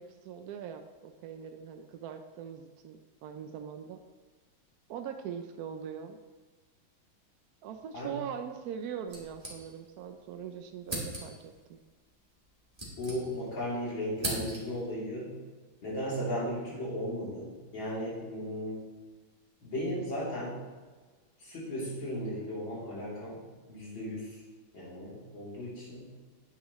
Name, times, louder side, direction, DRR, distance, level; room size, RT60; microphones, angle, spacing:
voice 1, 0.0-4.0 4.9-6.2 7.6-11.8, right 8 dB, 75° right, 6 dB, 0.8 m, -41 dB
sound 1, 9.1-10.1 10.3-10.4 10.8-11.5 12.4-13.6 13.9-14.9, right 1 dB, 20° right, 2.2 m, -39 dB
voice 2, 13.0-15.3 15.8-18.8 19.6-20.6 21.4-23.4 23.7-24.4 24.7-26.1, equal, 65° left, -8 dB, 4.0 m, -36 dB
10.0 x 9.7 x 3.1 m, 1.4 s
omnidirectional pair, 2.2 m